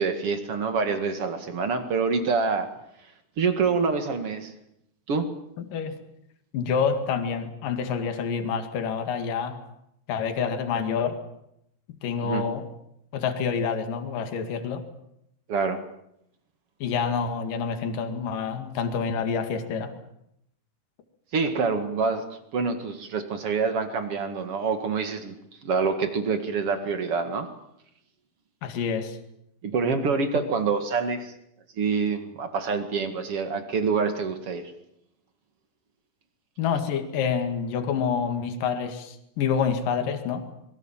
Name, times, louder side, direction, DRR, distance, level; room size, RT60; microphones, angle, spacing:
voice 1, 0.0-2.7 3.4-4.5 5.1-5.3 12.2-12.4 15.5-15.8 21.3-22.2 22.5-25.3 25.6-27.5 29.6-31.3 31.8-34.7, right 5 dB, 45° right, 8 dB, 2.3 m, -26 dB
voice 2, 5.6-6.0 6.5-9.6 10.1-11.2 12.0-12.7 13.1-14.8 16.8-19.9 28.6-29.2 30.3-30.4 36.6-40.4, left 6 dB, 60° left, 7 dB, 3.6 m, -27 dB
26.5 x 22.5 x 7.4 m, 0.78 s
omnidirectional pair, 4.7 m